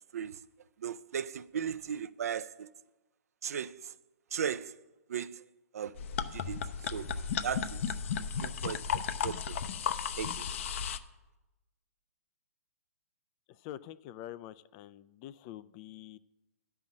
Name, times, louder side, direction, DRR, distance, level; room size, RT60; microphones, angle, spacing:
voice 1, 0.8-2.7 3.4-3.8 4.3-4.7 5.1-5.4 5.7-5.9 6.3-6.6 6.9-7.8 8.4-9.6 10.1-10.4, right 8 dB, 70° right, 0.5 m, -37 dB
sound 1, 6.0-11.0, left 7 dB, 55° left, 0.7 m, -34 dB
voice 2, 13.5-16.2, left 12 dB, 30° left, 0.3 m, -46 dB
10.5 x 5.6 x 7.3 m
hypercardioid pair, 145°, 9 cm